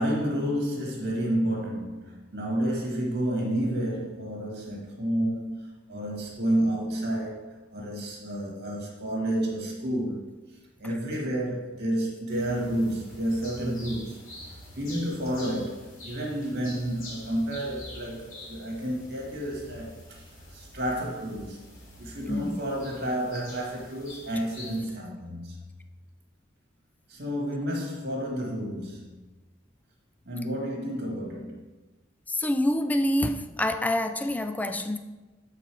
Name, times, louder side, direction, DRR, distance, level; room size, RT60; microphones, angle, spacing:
voice 1, 0.0-10.3 10.8-14.2 14.8-20.2 20.5-21.6 22.0-25.5 27.1-29.0 30.3-31.6, right 1 dB, 55° right, 1.9 m, -30 dB
sound 1, 12.3-24.8, left 1 dB, 85° left, 2.5 m, -46 dB
voice 2, 22.3-22.6 32.3-35.0, left 1 dB, 10° left, 0.3 m, -26 dB
8.0 x 4.1 x 4.7 m
head